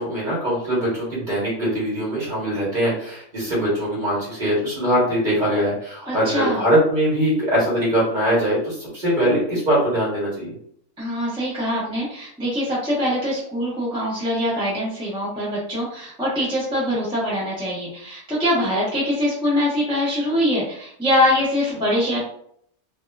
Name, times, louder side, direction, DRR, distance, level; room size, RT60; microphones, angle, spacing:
voice 1, 0.0-10.5, equal, 35° right, -6 dB, 1.1 m, -22 dB
voice 2, 6.1-6.6 11.0-22.2, left 1 dB, 5° right, -8 dB, 0.5 m, -23 dB
2.8 x 2.2 x 2.2 m, 0.67 s
omnidirectional pair, 1.7 m